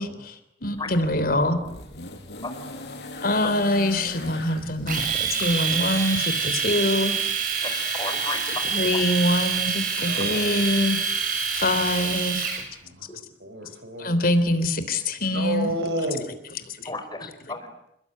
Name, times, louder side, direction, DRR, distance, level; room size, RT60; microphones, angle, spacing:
voice 1, 0.0-1.6 3.2-7.1 8.7-11.0 11.5-12.5 14.0-15.7 16.7-16.9, left 1 dB, 55° left, 11 dB, 3.4 m, -24 dB
sound 1, 0.6-5.9 6.9-7.0, left 2 dB, 70° left, 5.5 m, -40 dB
Domestic sounds home sounds, 4.9-12.6, right 6 dB, 50° right, 7.4 m, -26 dB
voice 2, 7.6-8.6 10.2-10.3 16.9-17.7, left 3 dB, 25° left, 7 dB, 5.1 m, -34 dB
voice 3, 10.0-10.6 12.8-13.1 13.4-14.2 15.3-16.2, right 1 dB, 80° right, 7 dB, 6.1 m, -31 dB
28.0 x 21.5 x 9.7 m, 0.78 s
head